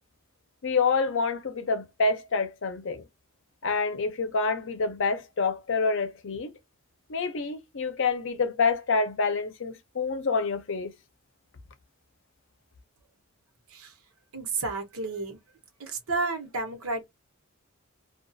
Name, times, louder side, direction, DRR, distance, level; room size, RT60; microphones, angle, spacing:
voice 1, 0.6-3.0 3.6-6.5 7.1-10.9, left 4 dB, 60° left, 0.6 m, -27 dB
voice 2, 14.3-15.4 15.8-17.1, right 3 dB, 80° right, 1.0 m, -31 dB
2.4 x 2.4 x 2.6 m
head